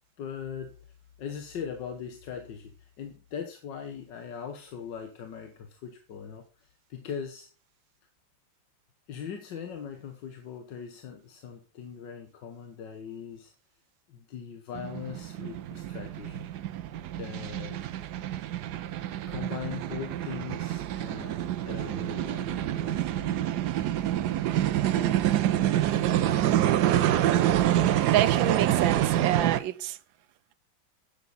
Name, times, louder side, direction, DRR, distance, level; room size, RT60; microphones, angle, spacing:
voice 1, 0.2-0.7 1.2-7.5 9.1-13.5 14.1-16.5 17.2-17.8 19.3-23.4, left 7 dB, 70° left, 1.7 m, -40 dB
sound 1, 14.7-29.6, right 12 dB, 70° right, 1.1 m, -27 dB
voice 2, 28.1-30.0, right 12 dB, 85° right, 1.4 m, -28 dB
10.5 x 8.3 x 4.0 m
omnidirectional pair, 2.1 m